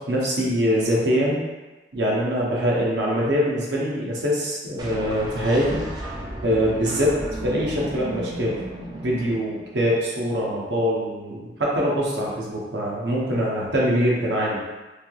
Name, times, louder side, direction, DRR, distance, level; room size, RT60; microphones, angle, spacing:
voice 1, 0.0-1.4 1.9-5.8 6.4-8.5 9.0-14.6, equal, 70° right, -4 dB, 0.7 m, -23 dB
sound 1, 4.8-9.9, right 1 dB, 25° right, 0.4 m, -34 dB
3.1 x 2.7 x 2.3 m, 1.1 s
head